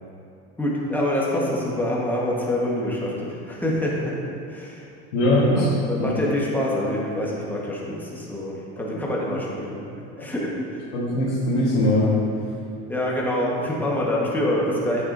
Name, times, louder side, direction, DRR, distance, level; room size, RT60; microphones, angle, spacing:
voice 1, 0.6-4.2 4.5-4.8 5.5-9.8 10.2-10.8 12.9-15.0, left 1 dB, 5° left, -4 dB, 1.4 m, -26 dB
voice 2, 5.1-5.7 6.0-6.1 10.2-10.3 10.9-12.2, left 1 dB, 85° left, -7 dB, 1.5 m, -21 dB
8.8 x 6.4 x 2.7 m, 2.7 s
supercardioid pair, 115°, 35 cm